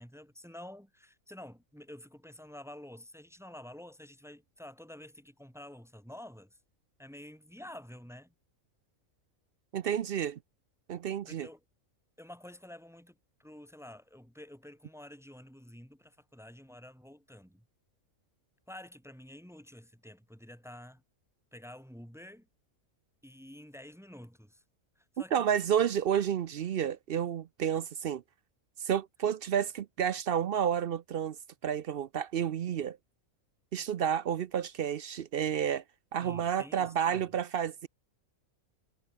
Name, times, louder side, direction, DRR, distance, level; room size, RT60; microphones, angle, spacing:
voice 1, 0.0-6.6 7.0-8.3 11.3-11.6 12.2-17.6 18.7-21.0 21.5-22.5 23.2-24.6 25.0-25.4 36.2-37.3, left 1 dB, ahead, 2.2 m, -49 dB
voice 2, 9.7-10.4 10.9-11.5 25.3-28.2 28.8-31.4 31.6-33.0 33.7-35.8 36.1-37.9, right 9 dB, 60° right, 0.6 m, -30 dB
omnidirectional pair, 1.5 m